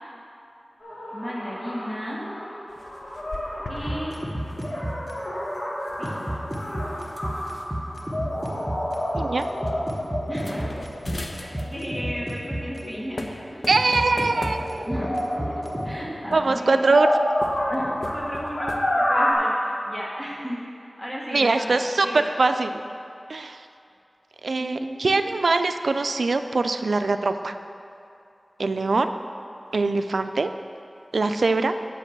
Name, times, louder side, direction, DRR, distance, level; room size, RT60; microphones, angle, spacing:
sound 1, 0.8-13.5 14.0-19.3, equal, 85° left, 2.3 m, -30 dB
voice 1, 1.1-2.2 3.7-4.2 6.0-6.5 10.3-10.8 11.2-13.7 14.9-16.9 17.7-20.6 21.0-22.2 24.6-25.1, equal, 10° left, -4 dB, 1.3 m, -34 dB
sound 2, 2.7-4.0 4.3-4.6 5.7-7.6 8.4-8.5 8.8-9.1 9.6-9.7 10.3-11.9 12.8-12.9 13.2-15.0 15.8-16.7 17.3-18.8, left 1 dB, 55° left, 0.8 m, -39 dB
sound 3, 3.9-5.1 6.0-12.8 13.7-15.9, equal, 15° right, 1.3 m, -30 dB
voice 2, 13.7-14.9 16.3-17.1 21.3-22.7 23.3-23.6 24.4-27.5 28.6-29.1 29.7-30.5 31.1-31.7, right 3 dB, 85° right, 9 dB, 0.4 m, -22 dB
9.0 x 5.3 x 7.2 m, 2.6 s
wide cardioid pair, 70°, 0 cm